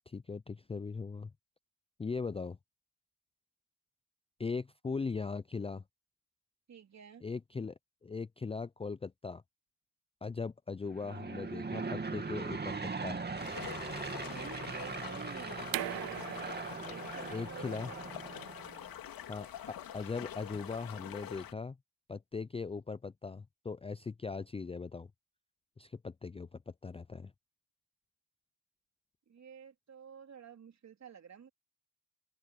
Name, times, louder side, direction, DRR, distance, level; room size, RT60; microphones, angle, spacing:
voice 1, 0.1-1.3 2.0-2.6 4.4-5.8 7.2-9.4 10.2-13.2 17.3-17.9 19.3-21.8 22.1-25.1 25.8-27.3, left 4 dB, 15° left, 0.5 m, -39 dB
voice 2, 6.7-7.2 14.3-16.1 16.8-18.1 29.3-31.5, right 7 dB, 45° right, 3.7 m, -50 dB
Aircraft / Engine, 10.9-18.9, right 4 dB, 25° right, 2.6 m, -40 dB
sound 1, 13.4-21.5, left 11 dB, 65° left, 2.7 m, -46 dB
sound 2, 15.7-21.3, right 21 dB, 75° right, 0.5 m, -44 dB
open air
supercardioid pair, 70°, 37 cm